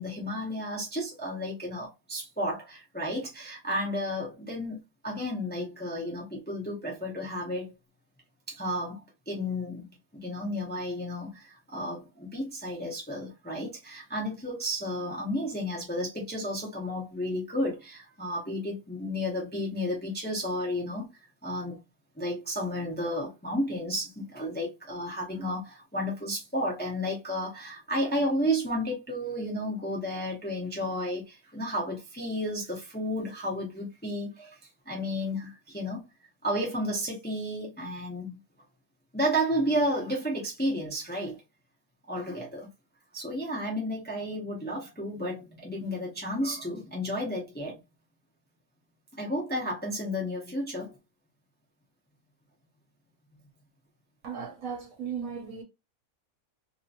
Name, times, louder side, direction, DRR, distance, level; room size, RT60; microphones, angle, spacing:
voice 1, 0.0-7.7 8.5-21.1 21.4-21.8 22.2-34.6 34.8-36.0 36.4-38.4 39.1-41.4 42.1-42.7 43.1-47.8 49.2-51.0, equal, 10° left, 0.7 m, -32 dB
voice 2, 54.2-55.6, right 7 dB, 65° right, 1.2 m, -36 dB
2.9 x 2.8 x 2.5 m
omnidirectional pair, 1.6 m